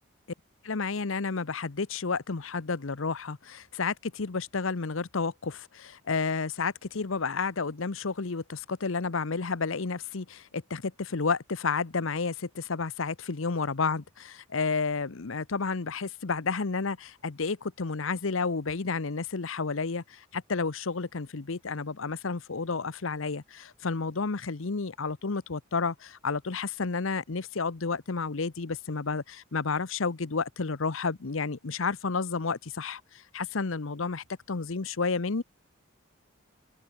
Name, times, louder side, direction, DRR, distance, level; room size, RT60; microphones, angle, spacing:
voice 1, 0.6-35.4, left 4 dB, 70° left, 0.9 m, -31 dB
head